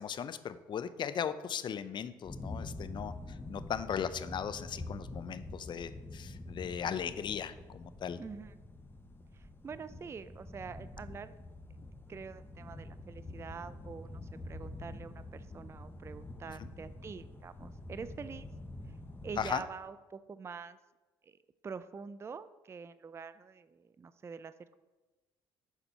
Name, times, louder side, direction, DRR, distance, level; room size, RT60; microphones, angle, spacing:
voice 1, 0.0-3.1 3.5-8.2 19.4-19.6, left 8 dB, 45° left, 13 dB, 0.5 m, -37 dB
sound 1, 2.2-19.5, left 2 dB, 20° left, 1.0 m, -46 dB
voice 2, 8.2-8.5 9.3-11.3 11.8-14.2 14.5-18.5 19.2-20.8 21.2-21.4 21.6-24.8, right 5 dB, 25° right, 14 dB, 0.3 m, -46 dB
7.0 x 4.4 x 5.5 m, 1.2 s
supercardioid pair, 65°, 11 cm